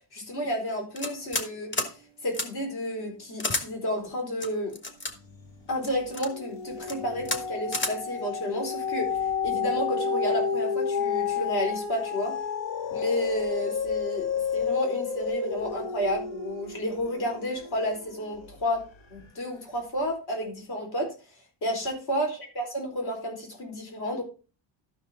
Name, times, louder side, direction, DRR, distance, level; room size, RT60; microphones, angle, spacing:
voice 1, 0.1-1.9 2.2-4.7 5.7-9.1 9.4-12.4 12.9-14.3 14.5-18.8 19.1-21.1 21.6-22.3 22.5-24.2, equal, 60° left, 1 dB, 4.5 m, -31 dB
sound 1, 1.0-1.5 1.7-1.9 2.3-2.5 3.4-3.6 4.4-5.1 5.8-6.3 6.8-7.0 7.2-7.4 7.7-7.9, left 2 dB, 25° left, 1.3 m, -30 dB
sound 2, 5.2-5.7 6.1-18.6 19.1-19.2, left 6 dB, 85° left, 1.9 m, -31 dB
12.5 x 6.2 x 3.7 m, 0.33 s
wide cardioid pair, 175°, 44 cm